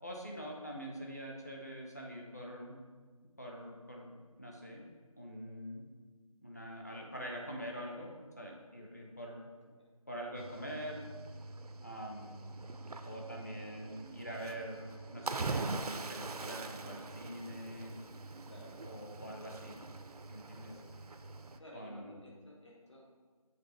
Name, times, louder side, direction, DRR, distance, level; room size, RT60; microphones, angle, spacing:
voice 1, 0.0-2.8 3.4-4.9 5.2-5.8 6.4-9.5 10.1-11.0 11.8-12.3 13.0-18.0 18.8-19.8 20.3-20.7 21.7-22.2, equal, 30° left, -1 dB, 0.7 m, -45 dB
Cricket / Waves surf, 10.4-21.6, right 3 dB, 90° right, 0.5 m, -43 dB
voice 2, 16.7-17.3 18.4-18.8 20.6-20.9 21.6-23.2, left 1 dB, 50° left, -3 dB, 1.5 m, -55 dB
7.5 x 3.4 x 4.7 m, 1.4 s
figure-of-eight pair, 175°, 19 cm